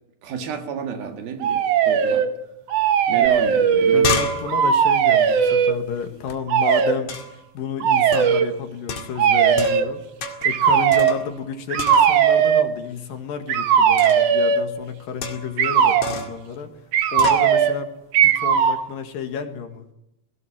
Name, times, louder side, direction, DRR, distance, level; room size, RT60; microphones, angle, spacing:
voice 1, 0.2-2.3 3.1-4.1, right 7 dB, 80° right, 6 dB, 3.7 m, -31 dB
sound 1, 1.4-2.3 2.7-4.2 4.5-5.8 6.5-7.0 7.8-8.5 9.2-9.9 10.4-11.2 11.7-12.7 13.5-14.7 15.6-16.1 16.9-17.8 18.1-18.8, right 8 dB, 60° right, 1.8 m, -18 dB
sound 2, 3.3-3.4 3.6-6.4 7.1-7.5 8.1-8.4 8.9-9.9 10.2-10.6 10.9-11.5 11.8-12.4 14.0-14.3 15.2-15.6 16.0-16.4 17.2-17.5, left 3 dB, 45° left, 2.9 m, -30 dB
voice 2, 3.9-7.2 7.5-10.0 10.4-16.7 17.1-17.9 18.2-19.8, left 6 dB, 70° left, 6 dB, 3.5 m, -31 dB
19.0 x 17.0 x 8.8 m, 0.87 s
omnidirectional pair, 4.2 m